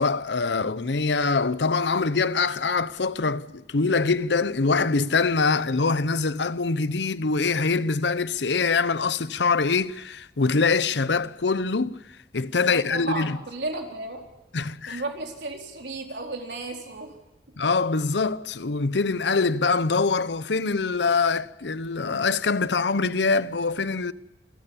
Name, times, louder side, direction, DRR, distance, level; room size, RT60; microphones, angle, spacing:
voice 1, 0.0-12.0 12.3-13.4 14.5-15.0 17.6-24.1, left 4 dB, 80° left, 0.8 m, -24 dB
voice 2, 12.7-14.2 14.9-17.1, right 2 dB, 80° right, 4.1 m, -33 dB
28.0 x 14.0 x 7.3 m
head